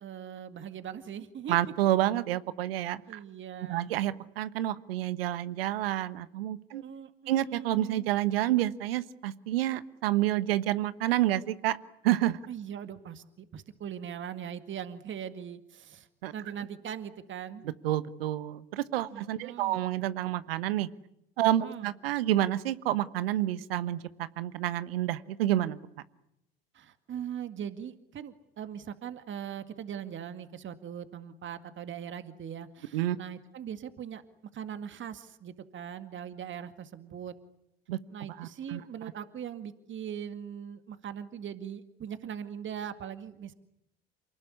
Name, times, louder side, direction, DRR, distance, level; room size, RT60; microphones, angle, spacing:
voice 1, 0.0-1.6 3.1-4.0 6.8-8.1 12.5-16.1 16.3-17.6 19.1-19.8 21.6-21.9 26.7-34.2 34.5-37.3 38.1-43.5, right 9 dB, 40° right, 10 dB, 2.1 m, -40 dB
voice 2, 1.5-3.2 3.7-6.8 7.3-11.8 12.0-12.4 16.2-16.3 17.6-20.9 21.4-25.8 32.9-33.2 37.9-38.0 38.3-38.8, right 13 dB, 75° right, 16 dB, 1.3 m, -29 dB
28.5 x 19.5 x 9.9 m, 0.83 s
figure-of-eight pair, 65°, 30 cm